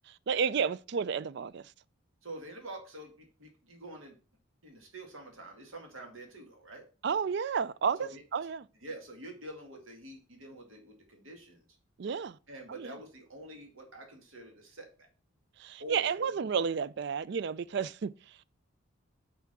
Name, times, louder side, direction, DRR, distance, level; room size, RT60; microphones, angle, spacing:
voice 1, 0.1-1.7 7.0-8.7 12.0-12.4 12.7-13.0 15.6-18.4, right 6 dB, 55° right, 0.4 m, -32 dB
voice 2, 2.2-4.1 4.6-6.8 8.0-8.2 8.8-11.7 12.5-14.9 15.8-16.3, right 1 dB, 75° right, 2.1 m, -46 dB
5.9 x 5.6 x 6.0 m
head